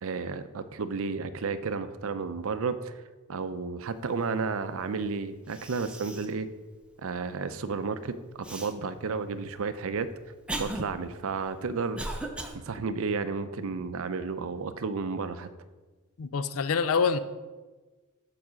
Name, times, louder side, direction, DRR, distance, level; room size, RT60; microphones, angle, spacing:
voice 1, 0.0-2.9 3.3-6.5 7.0-10.1 10.6-12.0 12.5-15.5, right 4 dB, 65° right, 12 dB, 0.5 m, -32 dB
Cough, 5.0-5.1 5.5-6.4 6.8-6.9 8.4-8.7 9.5-12.6, right 1 dB, 5° right, 0.6 m, -37 dB
voice 2, 16.2-17.2, left 5 dB, 70° left, 13 dB, 0.5 m, -26 dB
7.2 x 4.8 x 6.2 m, 1.3 s
head